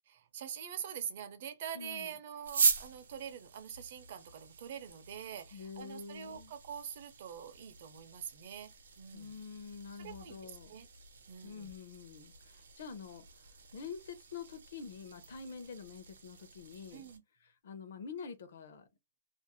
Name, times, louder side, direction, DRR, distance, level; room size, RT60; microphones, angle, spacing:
voice 1, 0.1-8.7 9.0-9.3 10.0-10.9 11.3-11.7 16.9-17.2, right 8 dB, 45° right, 0.5 m, -45 dB
voice 2, 1.7-2.2 5.5-6.5 9.1-10.7 11.4-13.3 13.7-17.1 17.4-18.9, left 5 dB, 55° left, 0.6 m, -47 dB
sound 1, 2.4-17.2, right 5 dB, 85° right, 0.7 m, -40 dB
2.5 x 2.0 x 2.9 m
hypercardioid pair, 165°, 0 cm